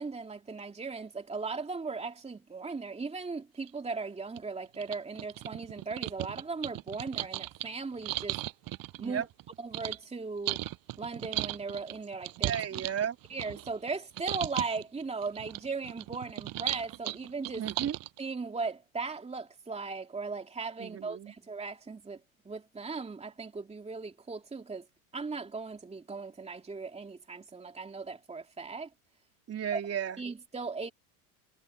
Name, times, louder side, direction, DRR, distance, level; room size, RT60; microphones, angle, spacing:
voice 1, 0.0-8.4 9.0-9.3 9.6-10.6 11.0-12.5 13.3-17.6 18.2-22.2 22.4-24.9 25.1-28.9 29.7-29.8 30.2-30.9, right 4 dB, 15° right, 2.8 m, -38 dB
sound 1, 3.7-3.8 4.4-4.5 4.7-10.0 10.5-13.9 14.2-14.8 15.2-18.2, right 16 dB, 50° right, 6.0 m, -36 dB
voice 2, 12.4-13.2 17.6-18.0 20.8-21.3 29.5-30.2, right 9 dB, 35° right, 3.6 m, -34 dB
hypercardioid pair, 95°, 43 cm